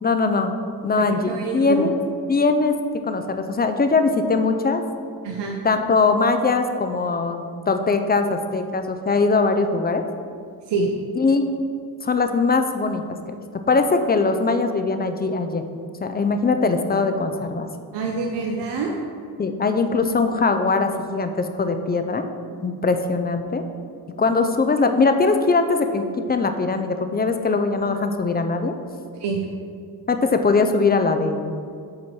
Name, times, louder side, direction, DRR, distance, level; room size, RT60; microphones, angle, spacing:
voice 1, 0.0-0.6 0.8-1.9 2.3-2.7 3.0-4.8 5.6-10.0 11.2-11.5 12.0-13.0 13.3-13.4 13.7-15.6 16.0-17.7 19.4-22.2 22.6-23.6 24.2-28.7 30.1-31.5, left 4 dB, 25° left, 7 dB, 0.3 m, -21 dB
voice 2, 1.0-1.9 5.2-5.6 10.7-10.9 17.9-18.9 29.2-29.4, right 4 dB, 90° right, 1 dB, 0.7 m, -26 dB
7.5 x 4.2 x 4.5 m, 2.3 s
wide cardioid pair, 130°, 41 cm